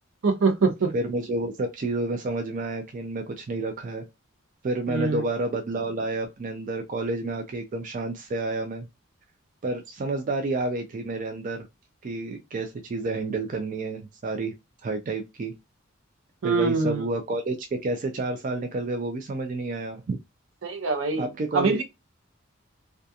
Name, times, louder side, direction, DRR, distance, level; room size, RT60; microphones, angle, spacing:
voice 1, 0.2-0.9 4.9-5.3 16.4-17.0 20.6-21.3 21.5-21.8, right 4 dB, 70° right, 0.7 m, -24 dB
voice 2, 0.9-4.0 4.6-8.9 9.6-11.7 12.0-14.5 14.8-15.5 16.4-17.6 17.8-20.2 21.1-21.8, right 2 dB, 40° right, 0.4 m, -29 dB
2.3 x 2.3 x 2.7 m
head